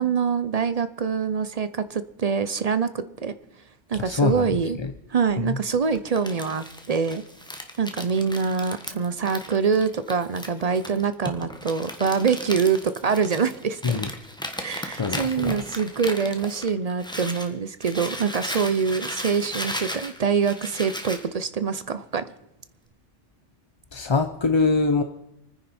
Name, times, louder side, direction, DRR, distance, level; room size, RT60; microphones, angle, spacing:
voice 1, 0.0-3.3 3.9-4.8 5.1-7.2 7.8-14.0 14.6-22.3, right 6 dB, 45° right, 12 dB, 0.6 m, -25 dB
voice 2, 3.9-4.9 5.4-5.6 13.8-14.1 15.0-15.6 23.9-25.0, left 4 dB, 35° left, 7 dB, 0.5 m, -24 dB
Crumpling crinkling, 5.9-17.5 17.8-21.2, equal, 5° left, 1.2 m, -36 dB
27.5 x 9.9 x 4.3 m, 0.84 s
omnidirectional pair, 1.2 m